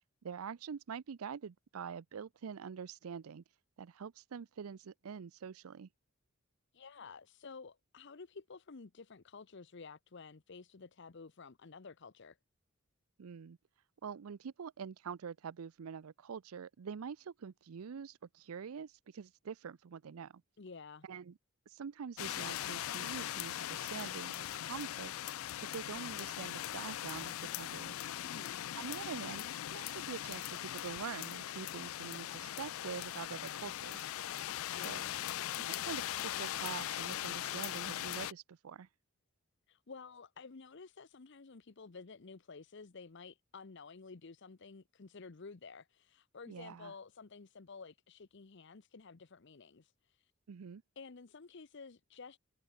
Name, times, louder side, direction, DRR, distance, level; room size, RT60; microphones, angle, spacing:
voice 1, 0.2-3.4 3.8-5.9 13.2-13.6 14.0-20.4 21.0-21.3 21.7-25.1 25.7-28.0 28.8-34.1 34.8-35.1 35.6-38.9 46.5-46.9 50.5-50.8, right 6 dB, 85° right, 0.5 m, -45 dB
voice 2, 6.7-12.4 20.6-21.1 28.2-28.6 34.7-35.1 39.7-50.3 51.0-52.4, left 4 dB, 55° left, 0.8 m, -52 dB
sound 1, 22.2-38.3, left 12 dB, 75° left, 0.4 m, -40 dB
head